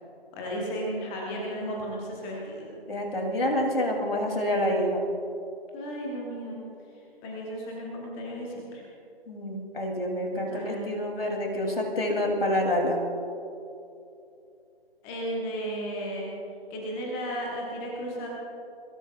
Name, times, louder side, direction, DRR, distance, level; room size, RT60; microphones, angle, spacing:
voice 1, 0.3-2.7 5.7-6.6 6.9-8.8 10.3-11.0 15.0-16.3 16.7-18.3, equal, 5° left, -2 dB, 0.9 m, -34 dB
voice 2, 2.9-5.0 9.3-13.0, left 1 dB, 65° left, 1 dB, 3.2 m, -27 dB
29.0 x 17.5 x 2.4 m, 2.7 s
figure-of-eight pair, 150°, 31 cm